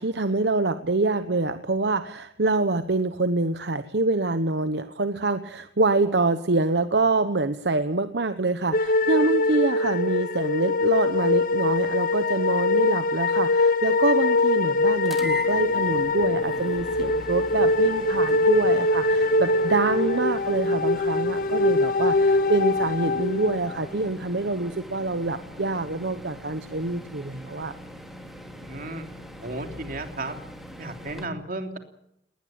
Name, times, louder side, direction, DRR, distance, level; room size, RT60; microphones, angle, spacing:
voice 1, 0.0-27.7, right 3 dB, 75° right, 10 dB, 1.0 m, -25 dB
sound 1, 8.7-23.9, left 2 dB, 55° left, 1.0 m, -23 dB
sound 2, 15.0-31.3, equal, ahead, 3.4 m, -42 dB
voice 2, 28.4-29.1 29.4-30.4 30.8-31.8, right 2 dB, 55° right, 6 dB, 3.1 m, -34 dB
20.0 x 19.5 x 8.9 m, 0.76 s
head